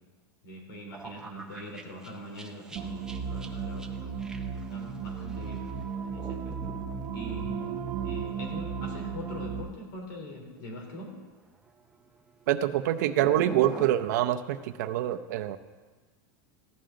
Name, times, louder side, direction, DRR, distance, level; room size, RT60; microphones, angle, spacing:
voice 1, 0.4-4.2 4.7-5.6 6.0-6.8 7.1-11.1, equal, 70° left, 1 dB, 3.5 m, -43 dB
sound 1, 0.9-10.1 10.3-10.6 11.4-13.9, right 3 dB, 5° right, 0.6 m, -47 dB
sound 2, 2.8-9.6, right 6 dB, 30° right, 1.1 m, -35 dB
voice 2, 12.5-15.6, right 12 dB, 60° right, 7 dB, 0.7 m, -26 dB
15.5 x 11.0 x 3.8 m, 1.4 s
supercardioid pair, 170°, 11 cm